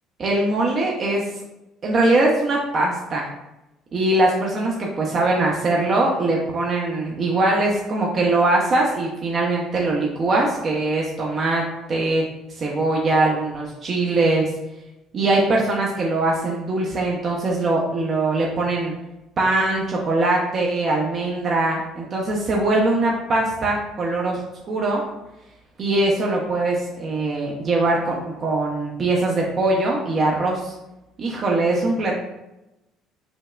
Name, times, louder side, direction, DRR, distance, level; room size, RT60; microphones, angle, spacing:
voice 1, 0.2-1.2 1.8-3.3 3.9-12.3 12.6-14.5 15.1-18.9 19.4-25.0 25.8-30.7 31.2-32.2, right 2 dB, 45° right, -2 dB, 0.6 m, -21 dB
5.0 x 2.1 x 2.3 m, 0.93 s
hypercardioid pair, 55°, 0 cm